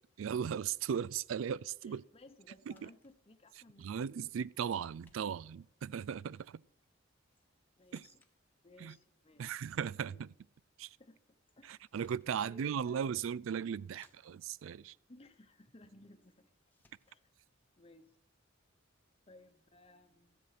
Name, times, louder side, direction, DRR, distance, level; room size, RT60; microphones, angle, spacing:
voice 1, 0.2-2.0 2.7-2.9 3.8-6.6 7.9-8.0 8.8-9.0 9.4-10.3 10.8-11.0 11.6-15.0, right 7 dB, 75° right, 0.3 m, -37 dB
sound 1, 1.4-1.7 2.6-3.2 4.2-4.7 4.9-5.6 7.3-7.5 7.8-8.4 11.5-11.6 11.9-12.4 13.3-13.6 13.9-14.5 16.2-16.4 16.7-17.2, left 2 dB, 10° left, 1.1 m, -71 dB
voice 2, 1.8-4.0 7.8-8.2 8.6-9.5 10.0-10.2 11.0-11.8 12.4-13.0 15.1-16.5 17.1-17.2 17.8-18.1 19.3-20.4, left 2 dB, 30° left, 0.9 m, -60 dB
14.0 x 7.9 x 5.9 m
head